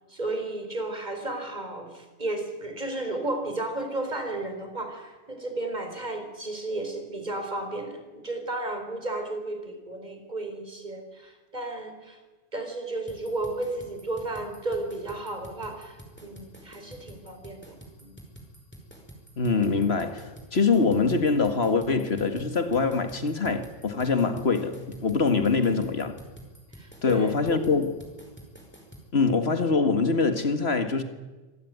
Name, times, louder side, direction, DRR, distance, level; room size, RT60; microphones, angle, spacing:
voice 1, 0.1-12.2 12.5-18.1 25.5-25.9 26.7-27.6, right 2 dB, 40° right, 4.6 m, -33 dB
sound 1, 13.1-29.1, right 1 dB, 10° left, 5.3 m, -48 dB
voice 2, 19.4-20.2 20.5-26.2 27.0-27.9 29.1-31.0, left 4 dB, 65° left, 2.0 m, -24 dB
25.5 x 18.0 x 9.5 m
omnidirectional pair, 1.2 m